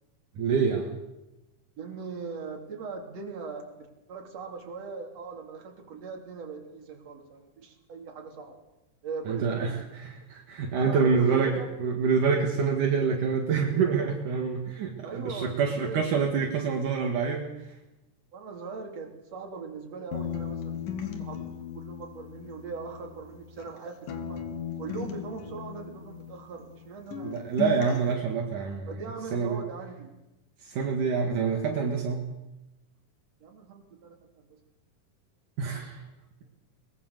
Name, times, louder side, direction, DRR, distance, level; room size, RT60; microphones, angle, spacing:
voice 1, 0.4-0.9 9.3-17.5 27.2-29.0 29.3-29.6 30.6-32.3 35.6-36.0, right 5 dB, 70° right, 1 dB, 3.4 m, -27 dB
voice 2, 1.8-8.6 9.0-9.9 10.8-11.7 15.0-16.5 18.3-20.8 21.2-24.4 24.8-27.6 28.9-30.1 33.4-34.6, right 4 dB, 50° right, 1 dB, 4.1 m, -40 dB
sound 1, 20.1-23.8 24.1-26.9 27.1-28.1, left 8 dB, 75° left, 3.3 m, -37 dB
22.5 x 21.0 x 6.8 m, 0.97 s
omnidirectional pair, 3.8 m